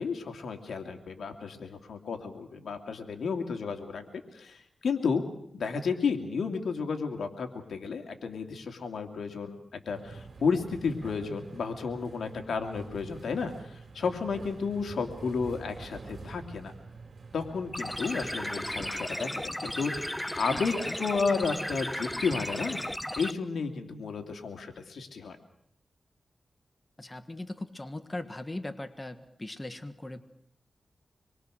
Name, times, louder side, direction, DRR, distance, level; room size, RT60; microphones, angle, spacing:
voice 1, 0.0-4.0 4.3-5.2 5.5-16.7 17.3-20.7 21.0-22.8 23.2-25.4, left 5 dB, 85° left, 5 dB, 2.5 m, -32 dB
sound 1, 9.9-18.9, right 4 dB, 55° right, 4.1 m, -47 dB
sound 2, 17.7-23.3, left 1 dB, 10° left, 0.9 m, -35 dB
voice 2, 20.5-21.0 27.0-30.2, left 2 dB, 25° left, 9 dB, 1.7 m, -39 dB
26.0 x 22.5 x 6.4 m, 0.73 s
cardioid pair, 65°, 0 cm